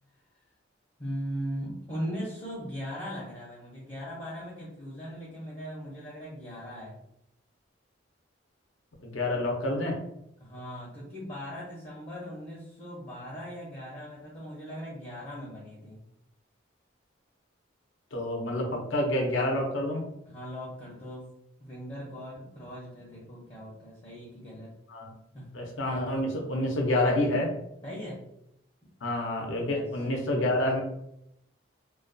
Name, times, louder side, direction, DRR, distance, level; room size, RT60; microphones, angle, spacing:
voice 1, 1.0-7.0 10.4-16.0 20.2-21.3 21.6-24.7 25.3-25.5 27.8-28.2 28.8-28.9 29.6-29.9, equal, 30° left, -6 dB, 0.6 m, -39 dB
voice 2, 9.0-10.0 18.1-20.0 24.9-25.1 25.5-27.5 29.0-30.8, left 1 dB, 75° left, 1 dB, 0.6 m, -28 dB
2.3 x 2.2 x 2.5 m, 0.79 s
head